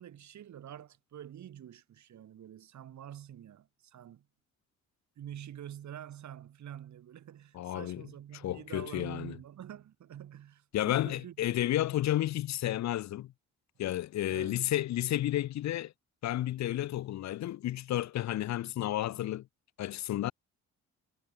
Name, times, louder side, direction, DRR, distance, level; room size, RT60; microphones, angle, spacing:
voice 1, 0.0-4.3 5.2-11.5 14.3-14.6, right 10 dB, 70° right, 7.9 m, -47 dB
voice 2, 7.5-8.0 8.3-9.4 10.7-13.3 13.8-15.9 16.2-19.4 19.8-20.3, left 13 dB, 65° left, 0.7 m, -32 dB
cardioid pair, 90°, 30 cm